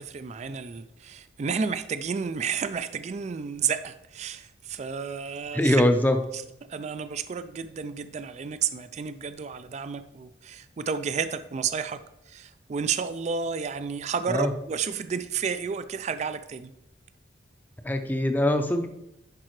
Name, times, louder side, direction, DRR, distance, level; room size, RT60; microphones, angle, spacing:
voice 1, 0.0-5.9 6.3-6.4 6.7-16.7, right 6 dB, 35° right, 0.3 m, -31 dB
voice 2, 5.5-6.2 14.3-14.5 17.8-18.9, left 1 dB, 10° left, 0.6 m, -22 dB
10.5 x 4.8 x 3.2 m
head